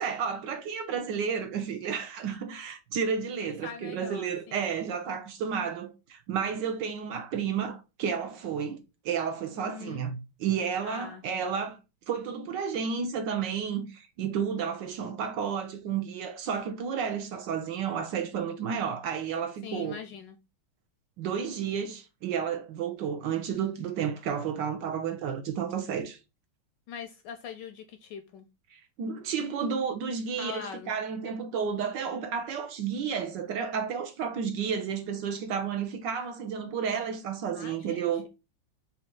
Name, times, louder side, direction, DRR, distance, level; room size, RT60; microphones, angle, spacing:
voice 1, 0.0-11.8 12.1-20.0 21.2-26.2 28.7-38.3, right 7 dB, 70° right, 1.2 m, -32 dB
voice 2, 3.6-4.6 9.6-10.1 10.8-11.2 19.6-20.4 26.9-28.5 30.4-30.9 37.5-38.3, left 7 dB, 75° left, 1.0 m, -42 dB
4.3 x 2.8 x 3.5 m
omnidirectional pair, 2.3 m